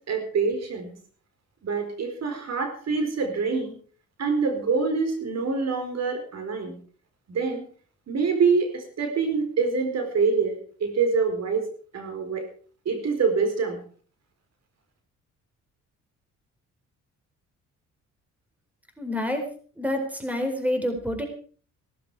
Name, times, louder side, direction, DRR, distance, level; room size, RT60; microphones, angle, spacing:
voice 1, 0.1-0.9 1.6-3.8 4.2-6.8 7.3-7.6 8.1-11.7 11.9-12.4 12.8-13.8, right 4 dB, 60° right, 6 dB, 4.5 m, -25 dB
voice 2, 19.0-19.5 19.8-21.2, left 1 dB, 5° right, 5 dB, 4.4 m, -27 dB
16.0 x 14.5 x 4.9 m, 0.43 s
cardioid pair, 90°, 30 cm